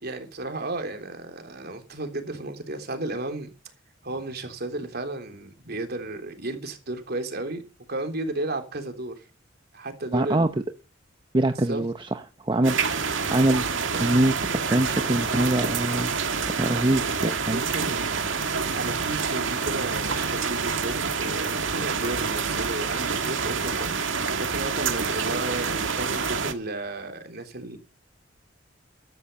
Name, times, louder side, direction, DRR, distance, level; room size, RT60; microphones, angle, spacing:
voice 1, 0.0-3.5 4.0-7.6 7.9-9.2 9.7-10.5 11.7-11.8 17.2-18.1 18.7-27.8, right 2 dB, 55° right, 3.5 m, -33 dB
voice 2, 10.1-10.5 11.3-13.7 14.0-16.1 16.5-17.6, right 1 dB, 25° right, 0.9 m, -24 dB
sound 1, 12.6-26.5, right 5 dB, 75° right, 2.1 m, -27 dB
14.0 x 12.5 x 5.5 m
head